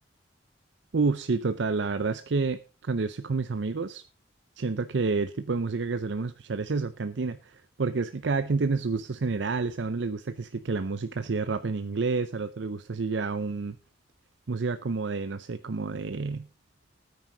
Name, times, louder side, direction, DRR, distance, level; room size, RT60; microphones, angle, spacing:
voice 1, 0.9-4.0 4.6-13.8 14.5-16.5, right 4 dB, 70° right, 0.6 m, -29 dB
14.0 x 9.4 x 3.9 m
head